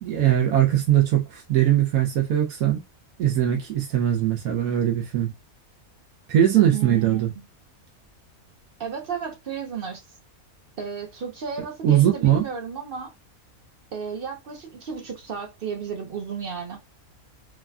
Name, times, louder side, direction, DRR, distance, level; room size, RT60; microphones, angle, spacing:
voice 1, 0.0-2.8 3.2-5.3 6.3-7.3 11.8-12.4, right 11 dB, 85° right, 1.1 m, -20 dB
voice 2, 6.7-7.2 8.8-10.0 10.8-13.1 13.9-16.8, right 6 dB, 55° right, 0.6 m, -33 dB
3.1 x 2.4 x 2.3 m
omnidirectional pair, 1.5 m